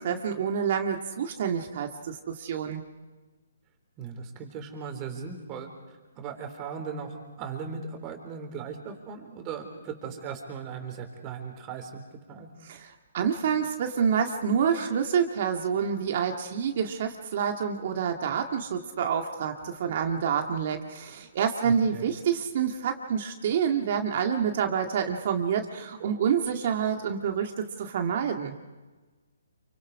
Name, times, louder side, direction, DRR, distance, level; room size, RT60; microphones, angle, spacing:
voice 1, 0.0-2.8 12.6-28.5, right 7 dB, 50° right, 4 dB, 2.0 m, -28 dB
voice 2, 4.0-5.7 6.2-12.0 12.3-12.5 21.6-22.1, right 6 dB, 25° right, 5 dB, 3.9 m, -38 dB
29.0 x 24.5 x 4.9 m, 1.2 s
hypercardioid pair, 145°, 0 cm